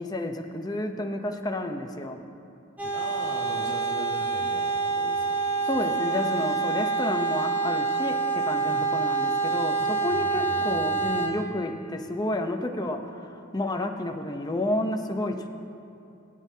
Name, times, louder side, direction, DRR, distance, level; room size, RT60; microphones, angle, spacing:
voice 1, 0.0-2.3 5.7-15.5, left 1 dB, 20° left, 4 dB, 0.7 m, -30 dB
sound 1, 2.8-11.3, right 4 dB, 10° right, 1.7 m, -27 dB
voice 2, 2.8-5.7 8.6-8.9 9.8-11.3, equal, 35° right, -6 dB, 2.6 m, -40 dB
21.0 x 9.2 x 2.8 m, 2.9 s
head